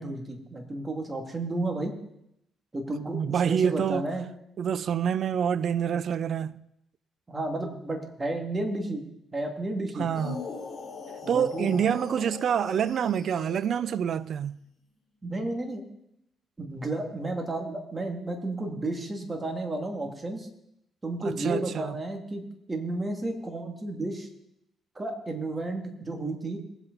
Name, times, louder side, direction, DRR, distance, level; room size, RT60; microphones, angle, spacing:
voice 1, 0.0-1.9 2.7-4.2 7.3-9.0 9.3-10.1 11.2-11.8 15.2-15.8 16.6-20.5 21.0-22.4 22.7-24.3 25.0-26.6, right 2 dB, 20° right, 2.4 m, -32 dB
voice 2, 3.1-4.1 4.6-6.6 10.0-10.4 11.3-14.6 21.2-22.0, right 8 dB, 60° right, 0.5 m, -27 dB
sound 1, 10.1-14.1, left 5 dB, 35° left, 3.5 m, -40 dB
20.0 x 8.1 x 4.0 m
cardioid pair, 90°, 0 cm